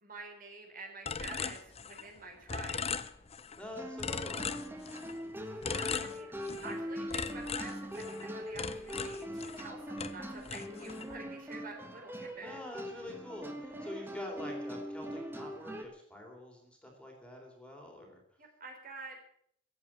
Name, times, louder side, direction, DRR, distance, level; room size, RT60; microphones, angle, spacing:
voice 1, 0.0-2.9 5.7-6.3 6.6-12.6 18.4-19.2, right 3 dB, 45° right, 2 dB, 3.8 m, -48 dB
sound 1, 1.1-2.2 2.5-3.6 4.0-5.2 5.6-6.8 7.1-9.7 10.0-11.2, left 6 dB, 30° left, 0.7 m, -39 dB
voice 2, 3.6-4.4 12.3-18.2, left 1 dB, 5° left, 1 dB, 3.4 m, -46 dB
sound 2, 3.8-15.8, equal, 10° right, 1.6 m, -42 dB
15.0 x 8.5 x 8.7 m, 0.66 s
head